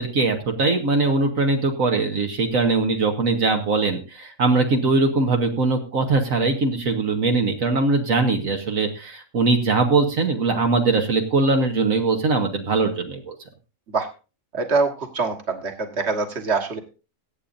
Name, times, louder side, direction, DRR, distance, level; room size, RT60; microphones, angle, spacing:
voice 1, 0.0-13.4, right 3 dB, 85° right, 3 dB, 1.7 m, -21 dB
voice 2, 14.5-16.8, right 4 dB, 55° right, 5 dB, 1.9 m, -24 dB
22.0 x 8.6 x 2.6 m, 0.32 s
omnidirectional pair, 1.4 m